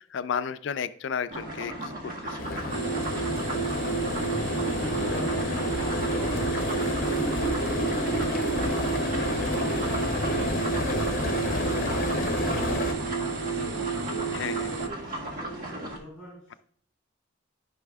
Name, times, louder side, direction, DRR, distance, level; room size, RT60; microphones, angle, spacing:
voice 1, 0.0-3.3 14.3-14.7, left 7 dB, 65° left, 13 dB, 0.4 m, -34 dB
sound 1, 1.3-16.0, right 1 dB, 45° right, 1.6 m, -37 dB
sound 2, 2.4-12.9, left 2 dB, 45° left, 0.8 m, -30 dB
sound 3, 2.7-14.9, right 5 dB, 65° right, 0.8 m, -31 dB
voice 2, 4.3-16.6, equal, ahead, -6 dB, 3.6 m, -43 dB
13.5 x 5.6 x 2.3 m, 0.62 s
head